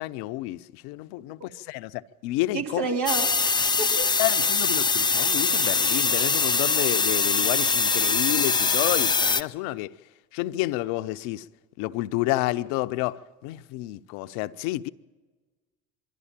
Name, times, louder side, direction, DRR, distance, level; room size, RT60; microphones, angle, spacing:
voice 1, 0.0-2.9 4.2-10.0 10.3-11.5 11.8-14.9, left 17 dB, 65° left, 0.7 m, -30 dB
voice 2, 2.5-3.3 3.6-4.1, right 4 dB, 75° right, 3.0 m, -29 dB
sound 1, 3.1-9.4, left 4 dB, 10° left, 0.5 m, -23 dB
24.5 x 12.5 x 8.8 m
hypercardioid pair, 80°, 41 cm